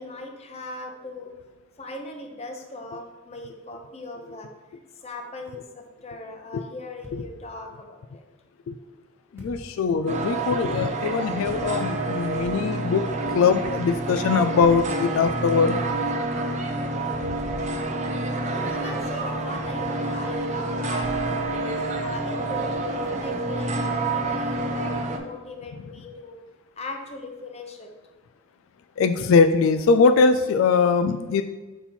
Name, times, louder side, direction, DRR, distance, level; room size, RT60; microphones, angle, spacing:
voice 1, 0.0-1.3 1.8-4.5 5.0-8.2 18.5-21.5 22.0-26.4 26.8-27.9, left 2 dB, 30° left, 3 dB, 0.7 m, -39 dB
sound 1, 7.0-7.8 9.4-9.9 11.5-12.0 14.6-15.2 17.4-18.8 21.0-21.9, equal, 15° right, 1.1 m, -43 dB
voice 2, 9.3-13.1 13.3-15.8 17.2-17.3 29.0-31.4, left 5 dB, 85° left, 10 dB, 0.3 m, -21 dB
sound 2, 10.1-25.2, right 2 dB, 35° right, 0.6 m, -28 dB
5.4 x 4.3 x 4.3 m, 1.2 s
head